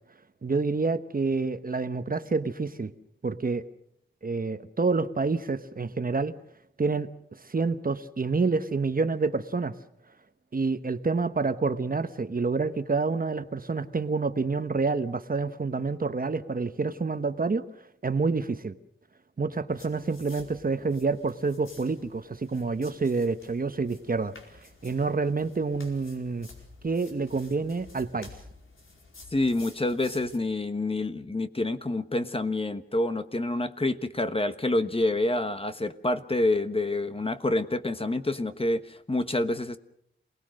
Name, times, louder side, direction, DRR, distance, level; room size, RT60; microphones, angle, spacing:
voice 1, 0.4-2.9 3.2-3.6 4.2-6.3 6.8-7.1 7.5-9.7 10.5-17.6 18.0-18.8 19.4-24.3 24.8-26.5 26.8-28.3, right 4 dB, 45° right, 10 dB, 1.1 m, -28 dB
sound 1, 19.7-30.4, left 3 dB, 80° left, 4.7 m, -52 dB
voice 2, 29.3-39.8, left 2 dB, 25° left, 9 dB, 1.2 m, -27 dB
28.0 x 19.0 x 6.5 m, 0.73 s
wide cardioid pair, 95°, 21 cm